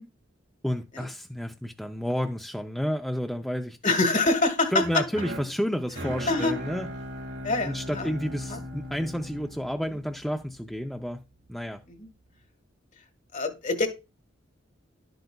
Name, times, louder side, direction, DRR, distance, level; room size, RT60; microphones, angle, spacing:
voice 1, 0.6-3.8 4.7-6.9 7.6-11.2 11.5-11.8, equal, ahead, 0.5 m, -30 dB
voice 2, 3.8-4.8 6.3-6.5 7.4-8.1 8.5-8.6 11.9-12.1 13.3-13.9, left 3 dB, 40° left, 1.5 m, -25 dB
sound 1, 4.8-10.9, equal, 65° right, 1.9 m, -39 dB
11.5 x 7.9 x 2.3 m
head